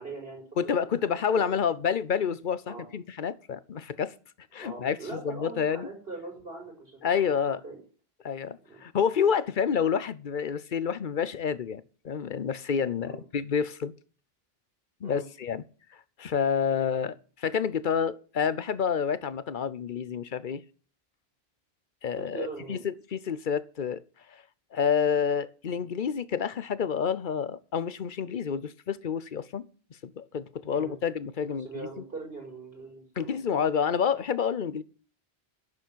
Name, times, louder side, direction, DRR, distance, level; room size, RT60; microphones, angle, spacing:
voice 1, 0.0-1.6 2.7-2.9 4.6-7.8 8.7-8.8 13.0-13.2 15.0-15.3 22.2-22.8 30.7-31.0 31.4-33.5, right 3 dB, 65° right, 5.5 m, -41 dB
voice 2, 0.6-4.1 4.5-5.9 7.0-7.6 8.2-13.9 15.0-15.6 16.2-20.6 22.0-24.0 24.3-24.4 24.7-29.7 30.0-31.9 33.2-34.8, left 7 dB, 55° left, 0.9 m, -29 dB
11.0 x 7.1 x 9.2 m
omnidirectional pair, 1.0 m